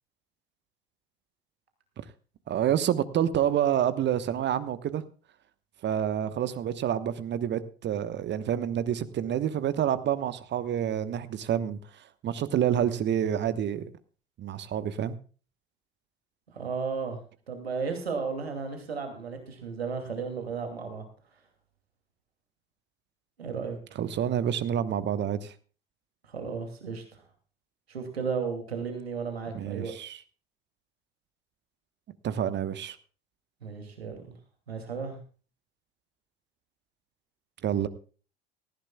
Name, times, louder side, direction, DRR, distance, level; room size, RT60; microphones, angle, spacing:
voice 1, 2.5-5.0 5.8-11.8 12.2-13.9 14.4-15.2 24.0-25.5 29.5-30.2 32.2-33.0 37.6-37.9, right 10 dB, 35° right, 14 dB, 1.2 m, -28 dB
voice 2, 16.5-17.2 17.5-21.0 23.4-24.0 26.3-27.2 27.9-29.9 33.6-34.3 34.7-35.2, right 5 dB, 80° right, 6 dB, 2.6 m, -34 dB
19.0 x 14.5 x 2.3 m, 0.38 s
figure-of-eight pair, 65°, 31 cm